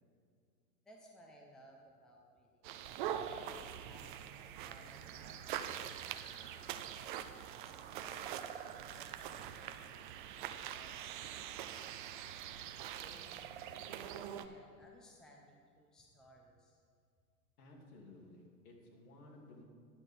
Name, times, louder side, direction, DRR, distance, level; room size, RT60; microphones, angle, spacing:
voice 1, 0.9-3.5 3.8-6.9 7.6-10.0 10.5-10.9 11.3-11.7 12.5-16.8, equal, ahead, -1 dB, 0.8 m, -62 dB
sound 1, 2.6-14.5, right 10 dB, 35° right, 0.5 m, -44 dB
voice 2, 17.6-19.6, left 2 dB, 60° left, 1 dB, 2.5 m, -56 dB
10.5 x 8.2 x 5.5 m, 2.3 s
hypercardioid pair, 110°, 50 cm